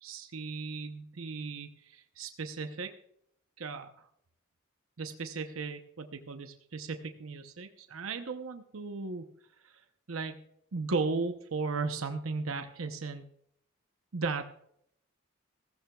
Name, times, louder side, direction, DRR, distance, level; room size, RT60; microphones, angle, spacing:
voice 1, 0.0-2.9 3.6-4.1 5.0-9.3 9.6-10.4 10.7-13.2 14.1-14.5, right 4 dB, 85° right, 7 dB, 0.8 m, -36 dB
15.5 x 15.0 x 2.3 m, 0.71 s
head